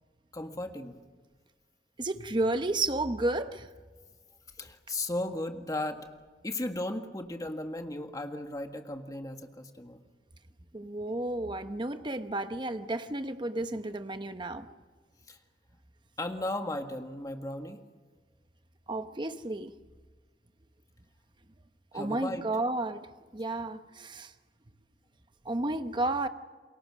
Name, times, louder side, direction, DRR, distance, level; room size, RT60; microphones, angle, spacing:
voice 1, 0.3-0.9 4.6-6.1 6.4-10.0 15.3-15.4 16.2-17.8 21.9-22.4, left 1 dB, 20° left, 5 dB, 1.7 m, -36 dB
voice 2, 2.0-3.7 10.7-14.7 18.9-19.7 21.9-24.3 25.4-26.3, right 2 dB, 25° right, 9 dB, 0.9 m, -32 dB
29.5 x 22.0 x 6.3 m, 1.4 s
head